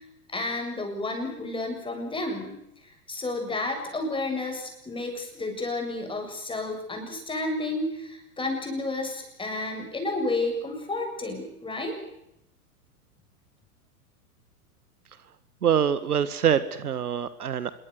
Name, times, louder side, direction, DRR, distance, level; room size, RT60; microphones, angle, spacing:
voice 1, 0.3-12.0, left 2 dB, 10° left, 4 dB, 7.4 m, -31 dB
voice 2, 15.6-17.8, right 8 dB, 75° right, 14 dB, 1.8 m, -25 dB
27.0 x 23.0 x 6.8 m, 0.82 s
figure-of-eight pair, 100°, 46 cm